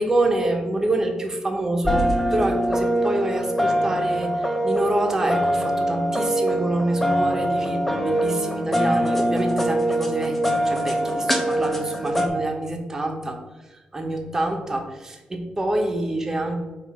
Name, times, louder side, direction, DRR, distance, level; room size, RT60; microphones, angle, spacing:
voice 1, 0.0-13.4 13.9-16.6, right 1 dB, 20° right, 3 dB, 1.0 m, -26 dB
sound 1, 1.8-12.3, equal, 10° left, 0.8 m, -23 dB
7.5 x 2.7 x 5.4 m, 1.1 s
wide cardioid pair, 145°, 3 cm